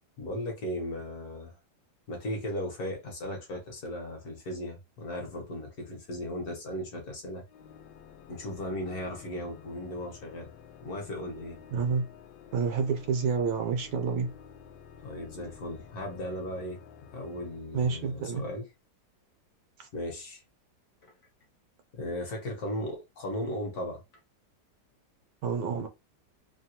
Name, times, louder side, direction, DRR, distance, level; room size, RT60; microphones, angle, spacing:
voice 1, 0.2-1.5 2.1-7.4 8.3-10.5 10.8-11.6 15.0-16.8 17.1-18.7 19.9-20.4 21.0-21.1 21.9-24.0, left 1 dB, 60° left, 1.3 m, -36 dB
Organ, 7.5-18.4, left 7 dB, 85° left, 1.3 m, -51 dB
voice 2, 11.7-12.1 12.5-14.3 17.7-18.4 19.8-19.9 25.4-25.9, right 5 dB, 75° right, 1.2 m, -29 dB
3.2 x 2.2 x 2.8 m
omnidirectional pair, 2.0 m